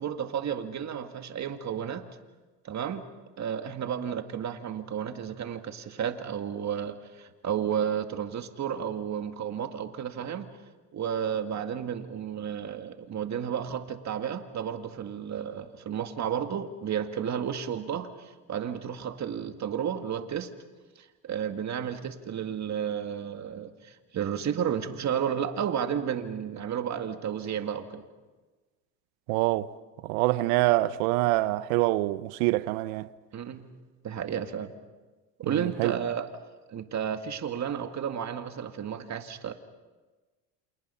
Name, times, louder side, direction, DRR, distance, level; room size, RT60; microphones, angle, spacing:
voice 1, 0.0-2.1 2.6-3.0 3.4-10.5 10.9-20.5 21.0-28.0 33.3-33.7 34.0-34.7 35.4-36.3 36.7-39.5, right 8 dB, 35° right, 2.0 m, -32 dB
voice 2, 29.3-29.7 30.0-33.1 35.5-35.9, right 18 dB, 80° right, 0.9 m, -25 dB
28.5 x 28.0 x 5.7 m
cardioid pair, 115°, 45 cm